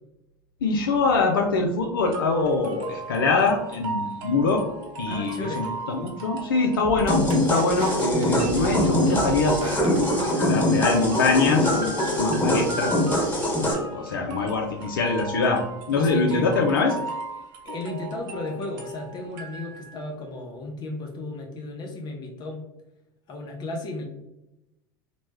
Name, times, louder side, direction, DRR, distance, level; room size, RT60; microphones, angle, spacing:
voice 1, 0.6-4.6 5.0-7.2 7.5-13.2 13.8-15.6 15.9-16.9, left 3 dB, 80° left, 2 dB, 0.4 m, -24 dB
sound 1, 2.1-20.0, right 3 dB, 70° right, 0.8 m, -38 dB
voice 2, 5.1-5.7 14.1-14.3 15.9-16.5 17.6-22.7 23.3-24.0, left 2 dB, 40° left, 1 dB, 0.6 m, -34 dB
sound 2, 6.8-11.0, right 3 dB, 45° right, 0.4 m, -36 dB
sound 3, 7.1-13.7, left 1 dB, 15° left, 1.2 m, -23 dB
2.9 x 2.2 x 3.3 m, 0.91 s
hypercardioid pair, 85°, 12 cm